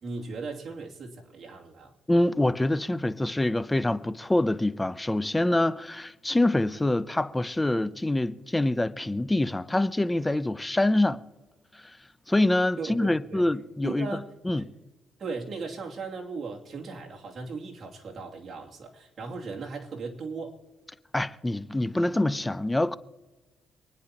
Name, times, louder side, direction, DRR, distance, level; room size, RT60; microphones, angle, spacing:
voice 1, 0.0-1.9 12.8-13.5 13.8-14.3 14.6-14.7 15.2-20.6, right 4 dB, 45° right, 2.7 m, -37 dB
voice 2, 2.1-11.2 11.7-12.0 12.3-14.1 14.4-14.6 21.1-22.9, left 1 dB, 15° left, 0.6 m, -25 dB
27.0 x 10.0 x 2.9 m
cardioid pair, 90°, 0 cm